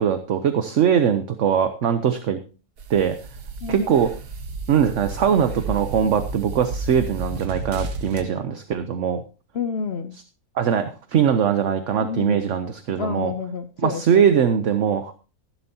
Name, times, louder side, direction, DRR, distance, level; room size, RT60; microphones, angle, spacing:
voice 1, 0.0-2.4 2.9-3.2 3.7-4.1 4.7-9.2 10.5-13.3 13.8-15.1, right 8 dB, 60° right, 10 dB, 1.1 m, -21 dB
sound 1, 2.8-8.2, right 3 dB, 90° right, 1.8 m, -33 dB
voice 2, 3.6-3.9 9.5-10.2 12.0-12.4 13.0-14.3, left 6 dB, 55° left, 9 dB, 0.8 m, -29 dB
15.0 x 11.5 x 2.8 m, 0.34 s
omnidirectional pair, 1.6 m